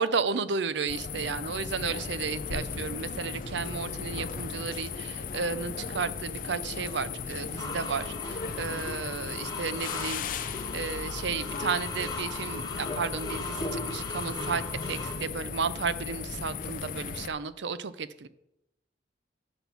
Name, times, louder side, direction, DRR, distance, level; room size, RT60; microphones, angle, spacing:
voice 1, 0.0-18.3, right 5 dB, 75° right, 14 dB, 0.6 m, -33 dB
sound 1, 0.9-17.3, left 5 dB, 45° left, 0.5 m, -36 dB
sound 2, 7.6-15.2, left 2 dB, 20° left, 1.5 m, -38 dB
8.9 x 6.0 x 6.9 m, 0.86 s
head